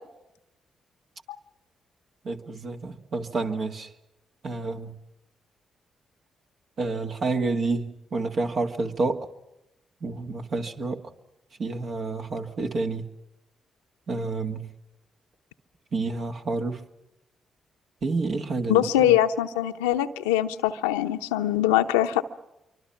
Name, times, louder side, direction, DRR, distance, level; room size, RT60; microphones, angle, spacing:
voice 1, 2.2-3.9 4.4-4.9 6.8-9.3 10.0-11.0 11.6-13.0 14.1-14.7 15.9-16.8 18.0-19.1, right 3 dB, 60° right, 2.0 m, -29 dB
voice 2, 18.7-22.2, left 12 dB, 90° left, 0.8 m, -23 dB
26.5 x 24.5 x 5.9 m
hypercardioid pair, 45°, 0 cm